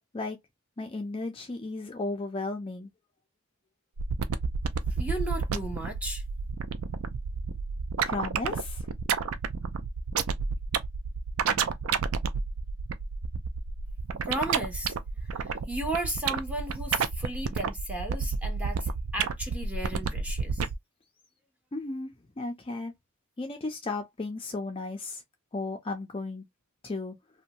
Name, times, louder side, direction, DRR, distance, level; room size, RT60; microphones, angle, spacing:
voice 1, 0.8-2.9 8.0-8.9 21.7-22.9 23.4-25.2 25.5-26.4 26.8-27.1, left 3 dB, 25° left, 0.4 m, -34 dB
sound 1, 4.0-20.7, right 6 dB, 75° right, 0.4 m, -30 dB
voice 2, 4.9-6.2 14.2-15.0 15.2-20.7, right 1 dB, 5° right, 0.7 m, -35 dB
2.6 x 2.2 x 2.8 m
head